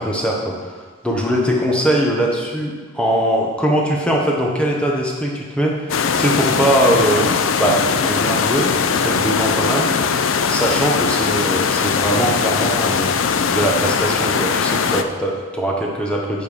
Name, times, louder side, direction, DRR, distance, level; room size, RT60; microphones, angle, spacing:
voice 1, 0.0-7.3 7.6-8.7 9.0-9.9 10.5-13.1 13.5-16.4, right 1 dB, 5° left, -2 dB, 1.1 m, -21 dB
sound 1, 5.9-15.0, left 6 dB, 80° left, 0.5 m, -20 dB
8.9 x 4.5 x 6.7 m, 1.5 s
head